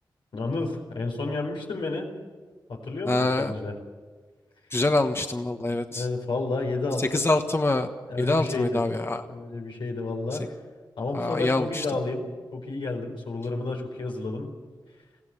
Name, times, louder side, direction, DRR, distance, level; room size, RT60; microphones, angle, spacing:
voice 1, 0.3-2.1 2.7-3.8 5.9-7.3 8.1-10.5 11.0-12.2 12.5-14.6, left 3 dB, 90° left, 0 dB, 4.3 m, -31 dB
voice 2, 3.1-3.5 4.7-6.1 7.1-7.9 8.2-9.2 11.1-11.8, left 2 dB, 30° left, 6 dB, 1.3 m, -25 dB
20.5 x 15.5 x 8.4 m, 1.4 s
cardioid pair, 45°, 8 cm